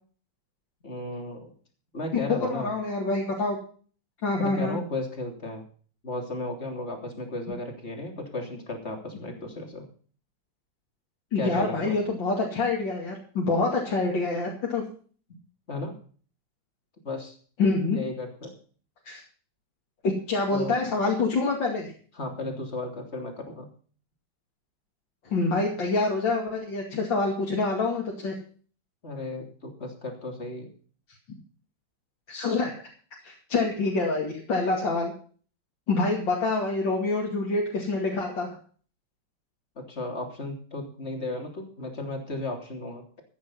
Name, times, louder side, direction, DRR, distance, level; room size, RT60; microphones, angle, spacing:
voice 1, 0.8-1.5 1.9-2.7 4.4-5.6 6.0-9.9 11.3-12.0 15.3-15.4 15.7-16.0 17.0-17.4 17.9-18.6 20.5-20.8 22.1-23.7 29.0-30.7 39.7-43.0, left 2 dB, 35° left, 3 dB, 3.4 m, -35 dB
voice 2, 2.5-3.6 4.2-4.8 11.3-14.8 17.6-18.0 19.1-19.2 20.0-21.9 25.3-28.4 32.3-32.7 33.2-35.1 35.9-38.6, left 3 dB, 75° left, -2 dB, 3.2 m, -26 dB
14.5 x 9.7 x 5.6 m, 0.43 s
omnidirectional pair, 2.1 m